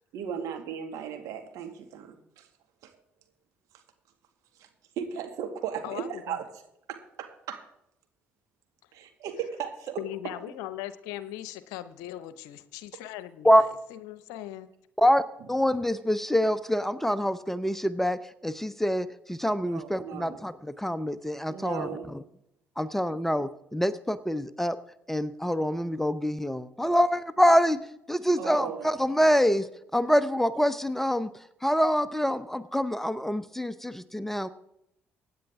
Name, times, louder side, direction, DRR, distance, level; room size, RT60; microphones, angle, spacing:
voice 1, 0.1-2.4 2.8-2.9 5.0-6.4 6.9-7.6 8.9-10.0 19.7-20.4 21.5-22.1 28.4-28.9, right 8 dB, 60° right, 5 dB, 2.1 m, -36 dB
voice 2, 5.8-6.4 10.0-14.7, left 13 dB, 65° left, 15 dB, 0.8 m, -39 dB
voice 3, 15.5-21.9 22.8-24.8 25.1-27.8 28.1-29.7 29.9-31.3 31.6-34.5, equal, 5° left, 14 dB, 0.8 m, -25 dB
24.5 x 9.4 x 3.6 m, 0.79 s
figure-of-eight pair, 50°, 6 cm